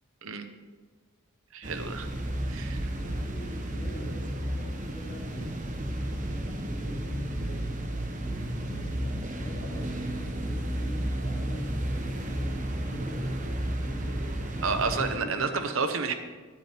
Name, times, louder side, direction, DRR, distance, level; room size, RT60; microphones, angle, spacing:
voice 1, 1.5-2.1 2.5-2.9 14.6-16.1, right 4 dB, 65° right, 7 dB, 0.8 m, -30 dB
sound 1, 1.6-15.2, right 1 dB, 35° right, 0.9 m, -32 dB
voice 2, 2.9-8.1 8.5-14.3 14.7-15.9, equal, 35° left, -3 dB, 2.5 m, -44 dB
10.5 x 9.0 x 4.4 m, 1.4 s
head